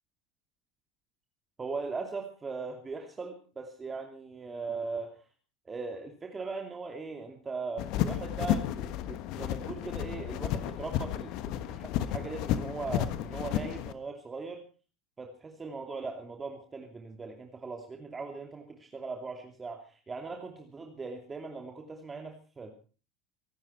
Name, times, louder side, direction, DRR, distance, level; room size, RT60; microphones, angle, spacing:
voice 1, 1.6-5.1 5.6-14.6 15.2-22.7, right 4 dB, 20° right, 3 dB, 2.7 m, -39 dB
sound 1, 7.8-13.9, left 11 dB, 55° left, 1.4 m, -32 dB
24.5 x 12.5 x 4.4 m, 0.38 s
figure-of-eight pair, 75°, 0 cm